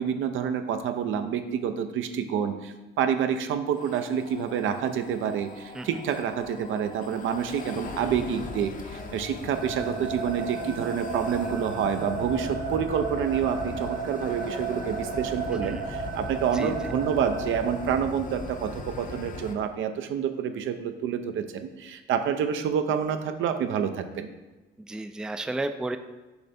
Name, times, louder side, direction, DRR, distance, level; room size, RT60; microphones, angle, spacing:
voice 1, 0.0-24.3, right 8 dB, 75° right, 8 dB, 0.6 m, -28 dB
sound 1, 3.7-19.5, left 3 dB, 45° left, 0.7 m, -39 dB
sound 2, 9.5-17.8, right 4 dB, 55° right, 1.2 m, -34 dB
voice 2, 24.9-26.0, right 2 dB, 5° right, 8 dB, 0.3 m, -32 dB
6.7 x 3.3 x 4.2 m, 1.2 s
cardioid pair, 90°, 20 cm